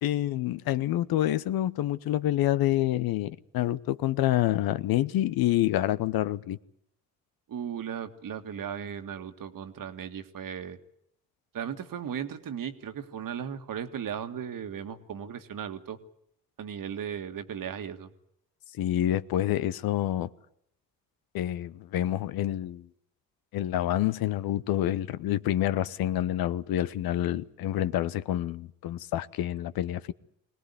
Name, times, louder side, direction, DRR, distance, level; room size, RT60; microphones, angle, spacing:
voice 1, 0.0-6.6 18.8-20.3 21.3-22.9 23.5-30.1, left 13 dB, 80° left, 0.9 m, -27 dB
voice 2, 7.5-10.8 11.5-16.0 16.6-18.1, right 8 dB, 65° right, 1.9 m, -36 dB
22.0 x 18.0 x 9.8 m
supercardioid pair, 60°, 36 cm